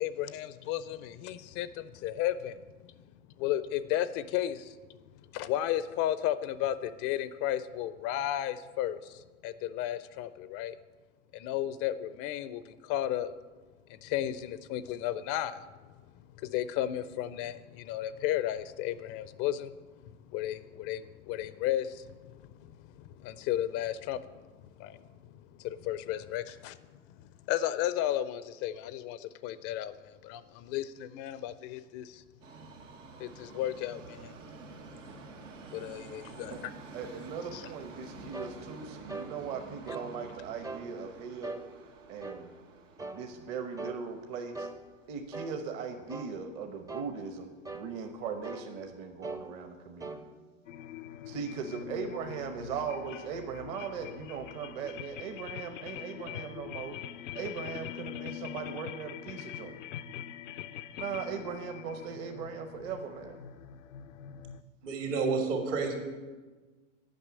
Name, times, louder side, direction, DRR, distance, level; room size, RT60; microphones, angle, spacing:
voice 1, 0.0-2.6 3.4-4.8 5.3-10.8 11.3-13.3 13.9-15.6 16.4-19.7 20.3-22.7 23.2-24.3 24.8-25.0 25.6-26.8 27.5-32.2 33.2-34.3 35.7-36.5 37.5-37.6, left 12 dB, 40° left, 15 dB, 0.5 m, -33 dB
Subway metro underground, 32.4-46.5 46.8-46.9 47.8-47.9 48.2-48.3 48.9-49.0, right 3 dB, 90° right, 1.4 m, -49 dB
voice 2, 36.9-41.5 42.1-42.5 43.1-44.7 45.1-50.3 51.3-57.0 57.3-59.8 61.0-63.4, right 6 dB, 45° right, 5 dB, 1.0 m, -39 dB
sound 1, 38.3-38.6 39.1-39.3 39.9-40.1 40.6-40.9 41.4-41.7 42.2-42.5 43.0-43.2 43.8-44.0 44.6-44.8 45.3-45.6 46.1-46.3 46.9-47.1 47.7-47.9 48.4-48.7 49.2-49.5 50.0-50.2, right 3 dB, 10° right, 0.5 m, -40 dB
sound 2, 50.6-64.6, left 11 dB, 85° left, 0.6 m, -43 dB
voice 3, 64.8-65.9, right 4 dB, 70° right, 2 dB, 2.9 m, -30 dB
9.0 x 5.8 x 8.2 m, 1.3 s
hypercardioid pair, 105°, 37 cm